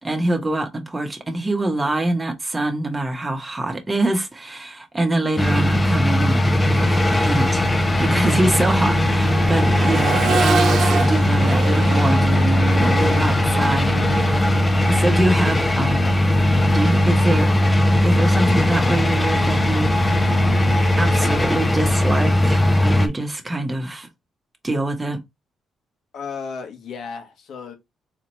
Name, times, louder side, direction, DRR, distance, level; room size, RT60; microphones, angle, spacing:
voice 1, 0.0-14.4 14.9-16.1 16.7-17.5 18.0-20.6 21.0-24.1 24.6-25.2, right 1 dB, 20° right, 1.0 m, -25 dB
sound 1, 5.4-23.1, left 1 dB, 20° left, 0.6 m, -18 dB
Accelerating revving vroom, 6.8-6.9 7.3-17.2 18.9-19.0, right 5 dB, 60° right, 0.8 m, -28 dB
voice 2, 26.1-27.7, left 5 dB, 70° left, 1.2 m, -34 dB
4.2 x 2.9 x 2.9 m
cardioid pair, 90°, 0 cm